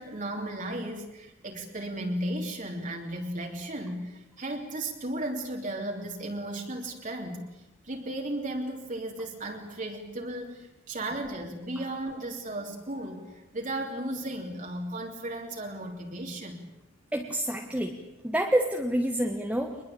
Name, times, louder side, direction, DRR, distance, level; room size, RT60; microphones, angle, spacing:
voice 1, 0.0-7.4 7.8-16.6, right 1 dB, 40° right, 1 dB, 3.3 m, -35 dB
voice 2, 17.1-18.0 18.2-19.8, right 1 dB, 5° right, 2 dB, 1.7 m, -27 dB
24.5 x 21.5 x 8.6 m, 0.91 s
head